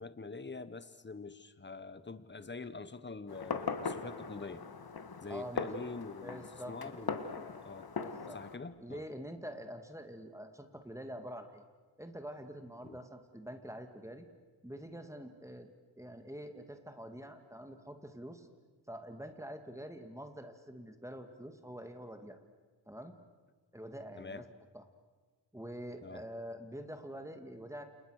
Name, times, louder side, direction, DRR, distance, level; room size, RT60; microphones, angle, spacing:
voice 1, 0.0-4.6 5.2-7.9 8.3-9.0 12.8-13.0 24.2-24.5 26.0-26.2, left 4 dB, 25° left, 13 dB, 1.2 m, -45 dB
Fireworks, 3.3-8.6, left 5 dB, 50° left, 1.8 m, -40 dB
voice 2, 5.3-5.7 6.2-7.1 8.0-8.4 8.8-11.6 12.0-14.2 14.6-15.7 16.0-18.5 18.9-22.4 22.9-23.1 23.7-24.5 24.7-24.8 25.5-27.8, equal, 5° right, 6 dB, 2.2 m, -46 dB
29.5 x 28.5 x 6.5 m, 1.4 s
wide cardioid pair, 115°, 45 cm